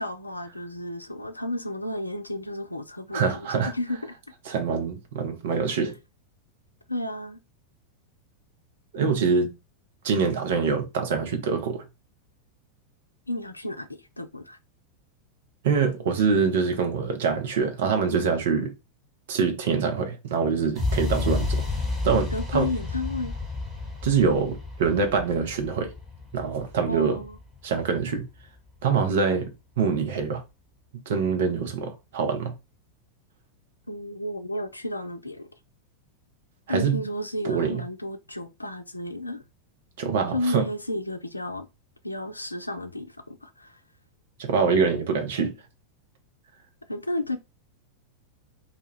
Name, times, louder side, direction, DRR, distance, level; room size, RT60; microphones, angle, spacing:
voice 1, 0.0-4.2 6.9-7.4 13.3-14.6 22.3-23.3 26.9-27.4 33.9-35.5 36.7-39.4 40.3-41.7 42.0-43.8 46.9-47.4, left 1 dB, 85° left, 0.3 m, -32 dB
voice 2, 3.1-3.7 4.5-5.9 8.9-9.5 10.0-11.8 15.6-18.7 19.3-21.6 22.0-22.7 24.0-25.9 26.3-27.2 27.6-28.2 28.8-29.5 29.8-30.4 31.1-32.5 36.7-37.0 37.4-37.8 40.0-40.6 44.4-45.5, right 5 dB, 55° right, 0.7 m, -24 dB
sound 1, 20.8-28.7, left 3 dB, 10° right, 1.1 m, -31 dB
2.2 x 2.2 x 3.3 m
figure-of-eight pair, 90°, 0 cm